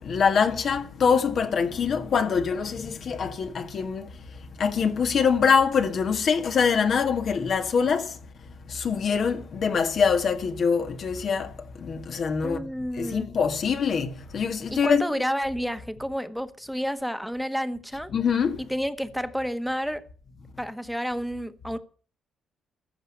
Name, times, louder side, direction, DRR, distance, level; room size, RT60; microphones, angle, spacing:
voice 1, 0.0-4.1 4.6-8.1 8.7-11.5 11.8-12.6 13.0-15.0 18.1-18.6, left 6 dB, 55° left, 1.8 m, -24 dB
voice 2, 12.4-13.3 14.7-18.1 18.7-20.0 20.6-21.8, equal, ahead, 1.3 m, -30 dB
15.0 x 6.1 x 9.8 m
cardioid pair, 90°, 0 cm